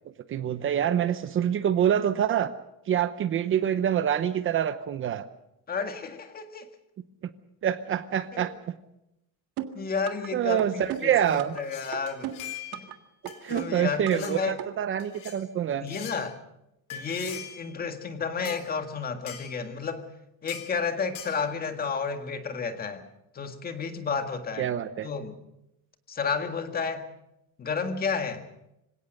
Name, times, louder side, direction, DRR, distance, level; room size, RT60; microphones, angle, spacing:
voice 1, 0.3-2.5 2.9-5.2 7.6-8.5 10.3-11.6 13.4-15.9 24.6-25.1, right 9 dB, 35° right, 12 dB, 0.8 m, -26 dB
voice 2, 5.7-6.7 8.3-8.5 9.7-12.3 12.7-12.9 13.5-14.6 15.8-16.4 16.9-20.0 20.4-23.0 23.3-24.7 25.0-25.3 26.1-27.1 27.6-28.4, left 5 dB, 25° left, 7 dB, 1.8 m, -31 dB
sound 1, 9.6-10.3 10.6-11.6 11.9-13.0 13.3-14.3 14.6-14.7, right 12 dB, 85° right, 1.8 m, -36 dB
sound 2, 10.8-12.9 13.3-13.7 14.1-14.4 15.0-15.4 15.9-16.2 16.9-17.7 18.4-18.6 19.3-19.6 20.5-20.8 21.1-21.4, left 10 dB, 65° left, 4.0 m, -42 dB
26.0 x 17.5 x 6.5 m, 0.86 s
cardioid pair, 180°, 35 cm